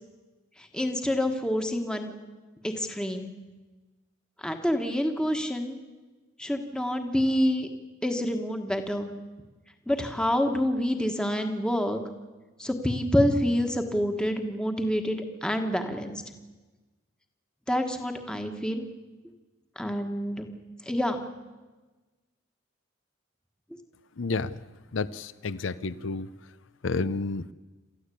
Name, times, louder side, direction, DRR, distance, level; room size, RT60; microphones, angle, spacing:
voice 1, 0.7-2.1 2.6-3.3 4.4-5.8 6.4-7.7 8.0-9.1 9.9-12.0 12.6-15.2 15.4-16.2 17.7-18.8 19.8-20.5 20.9-21.2, equal, 5° left, 5 dB, 1.4 m, -27 dB
voice 2, 24.2-24.5 24.9-26.3 26.8-27.5, left 4 dB, 70° left, 17 dB, 0.6 m, -30 dB
28.0 x 13.5 x 8.5 m, 1.3 s
head